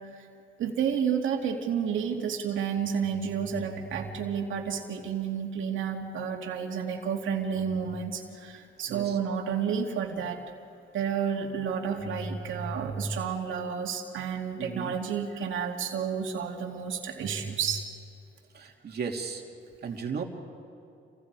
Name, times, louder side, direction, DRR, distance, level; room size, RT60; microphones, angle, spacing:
voice 1, 0.6-10.4 10.9-17.8, right 7 dB, 80° right, 2 dB, 2.7 m, -31 dB
voice 2, 14.6-14.9 18.5-19.4 19.8-20.2, right 5 dB, 55° right, 2 dB, 2.7 m, -35 dB
30.0 x 24.5 x 4.9 m, 2.6 s
cardioid pair, 90°, 20 cm